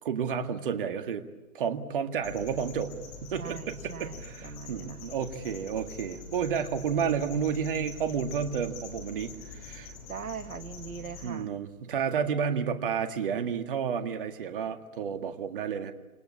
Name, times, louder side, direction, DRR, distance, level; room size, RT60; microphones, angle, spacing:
voice 1, 0.0-1.2 1.5-2.9 3.2-9.9 11.2-15.9, right 7 dB, 35° right, 7 dB, 2.0 m, -31 dB
sound 1, 2.2-11.3, left 4 dB, 25° left, 6.2 m, -45 dB
voice 2, 3.4-5.1 10.1-11.5, right 6 dB, 70° right, 10 dB, 1.6 m, -41 dB
27.5 x 25.0 x 8.6 m, 1.2 s
hypercardioid pair, 150°, 44 cm